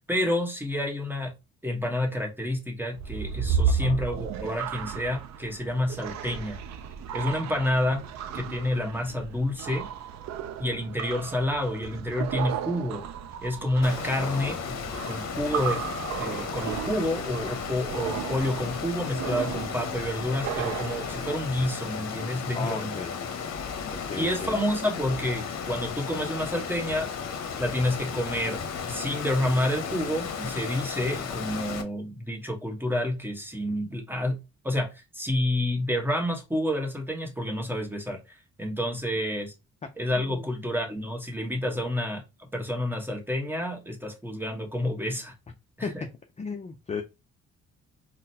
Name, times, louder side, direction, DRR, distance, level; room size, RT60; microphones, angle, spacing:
voice 1, 0.0-1.3 1.6-6.6 7.1-8.0 8.3-9.9 10.6-13.0 13.4-14.8 15.1-15.8 16.2-22.9 24.2-27.1 27.6-28.6 28.9-34.4 34.6-38.2 38.6-39.5 40.0-42.2 42.5-45.3 45.8-46.0, left 1 dB, 5° right, 1 dB, 1.1 m, -29 dB
sound 1, 2.9-21.7, right 7 dB, 65° right, 0.5 m, -34 dB
voice 2, 3.7-4.0 14.2-14.6 22.5-23.1 23.9-24.5 33.7-33.8 40.2-40.5 41.6-41.7 45.8-46.1 46.4-47.0, left 4 dB, 25° left, 5 dB, 0.4 m, -35 dB
Water, 13.8-31.8, left 6 dB, 60° left, 0.8 m, -34 dB
3.8 x 2.1 x 2.7 m, 0.25 s
cardioid pair, 90°, 30 cm